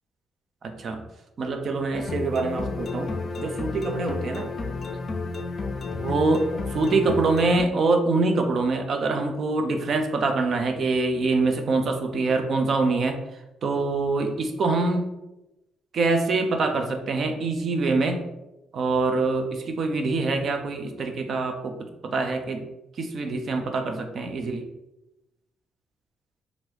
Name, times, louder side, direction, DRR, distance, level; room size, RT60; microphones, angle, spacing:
voice 1, 0.6-1.0 1.4-4.5 6.0-13.2 13.6-15.1 15.9-18.2 18.7-21.7 22.0-22.6 23.0-24.6, right 3 dB, 55° right, 5 dB, 0.5 m, -25 dB
sound 1, 1.9-7.6, left 3 dB, 45° left, 0.4 m, -31 dB
3.0 x 2.6 x 3.2 m, 0.95 s
cardioid pair, 90°, 0 cm